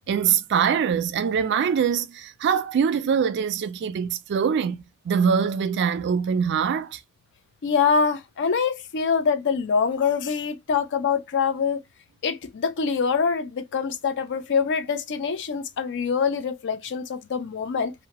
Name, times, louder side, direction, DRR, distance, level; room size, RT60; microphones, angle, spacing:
voice 1, 0.1-7.0, right 7 dB, 50° right, 0.3 m, -23 dB
voice 2, 7.6-11.8 12.2-17.9, left 6 dB, 55° left, 0.4 m, -24 dB
2.7 x 2.1 x 2.8 m
head